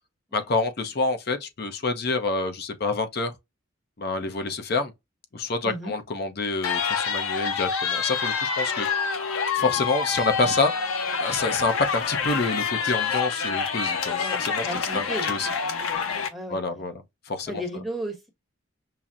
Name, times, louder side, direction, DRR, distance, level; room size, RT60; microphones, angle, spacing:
voice 1, 0.3-3.3 4.0-4.9 5.3-8.9 9.5-10.7 11.2-15.5 16.5-16.9 17.3-17.6, left 3 dB, 50° left, 0.6 m, -27 dB
sound 1, 6.6-16.3, left 5 dB, 90° left, 0.6 m, -27 dB
voice 2, 14.2-15.3 15.7-16.0 16.3-16.9 17.5-18.3, equal, ahead, 1.0 m, -35 dB
5.7 x 2.0 x 2.4 m
head